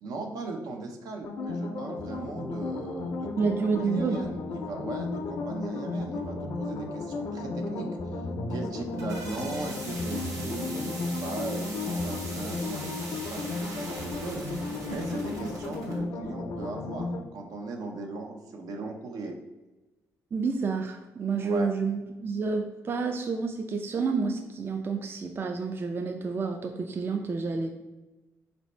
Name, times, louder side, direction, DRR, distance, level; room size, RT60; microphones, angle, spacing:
voice 1, 0.0-3.5 3.8-7.9 8.5-19.4 21.4-21.7, right 3 dB, 75° right, 3 dB, 0.6 m, -38 dB
sound 1, 1.2-17.2, left 3 dB, 70° left, 0.5 m, -34 dB
voice 2, 3.4-4.2 20.3-27.7, right 4 dB, 35° right, 5 dB, 0.3 m, -29 dB
sound 2, 8.7-16.0, right 2 dB, 60° right, 1.1 m, -42 dB
4.2 x 2.7 x 3.1 m, 1.1 s
cardioid pair, 100°, 6 cm